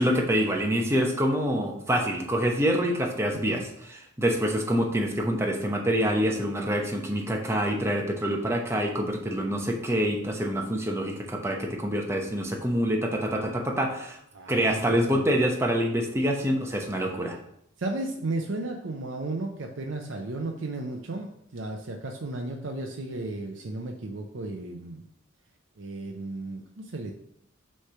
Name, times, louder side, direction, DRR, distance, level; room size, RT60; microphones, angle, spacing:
voice 1, 0.0-14.2 14.5-17.4, equal, 15° right, 1 dB, 0.9 m, -26 dB
voice 2, 3.3-3.7 14.3-15.2 17.8-25.0 25.8-27.1, right 2 dB, 70° right, 2 dB, 0.6 m, -34 dB
6.5 x 3.3 x 5.6 m, 0.72 s
head